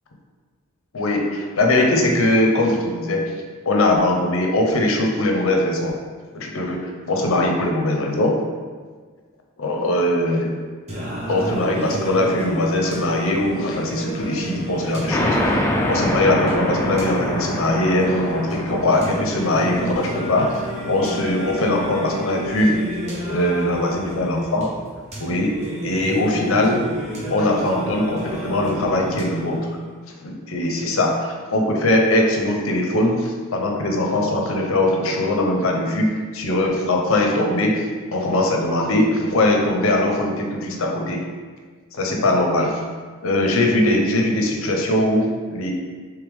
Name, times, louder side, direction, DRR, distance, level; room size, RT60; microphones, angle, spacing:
voice 1, 0.9-3.2 3.7-6.0 6.3-8.4 9.6-10.5 11.3-22.7 23.3-24.7 25.2-25.5 25.8-26.8 27.3-29.6 30.2-41.2 41.9-42.8 43.2-45.7, left 1 dB, 65° left, 1 dB, 0.6 m, -21 dB
Singing, 10.9-29.9, equal, 30° right, 0.8 m, -31 dB
sound 1, 15.1-22.3, left 1 dB, 10° left, 0.3 m, -26 dB
3.3 x 3.2 x 3.4 m, 1.5 s
head